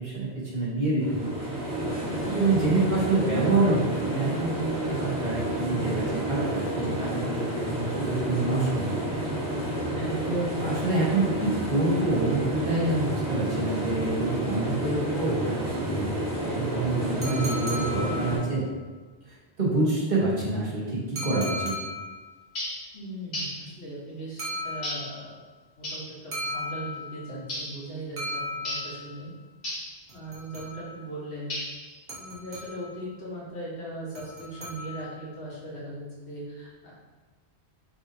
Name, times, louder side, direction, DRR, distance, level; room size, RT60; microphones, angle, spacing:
voice 1, 0.0-1.6 2.3-9.2 10.2-16.1 16.4-18.7 19.6-21.7, right 2 dB, 45° right, -6 dB, 1.3 m, -27 dB
sound 1, 1.0-18.4, right 1 dB, 15° right, 1.4 m, -30 dB
voice 2, 2.2-2.6 9.8-10.2 22.9-25.4 25.8-29.3 30.1-31.5 32.2-36.9, right 1 dB, 80° left, -7 dB, 1.6 m, -39 dB
sound 2, 17.2-18.7 21.2-22.3 24.4-25.3 26.3-27.3 28.2-29.2 30.1-31.1 32.1-33.0 34.1-35.2, left 1 dB, 65° right, 1.2 m, -36 dB
sound 3, 22.5-22.8 23.3-23.6 24.8-25.1 25.8-26.1 27.5-27.8 28.6-28.9 29.6-29.9 31.5-31.9, left 1 dB, 60° left, 1.3 m, -34 dB
5.5 x 2.8 x 2.7 m, 1.3 s
omnidirectional pair, 1.1 m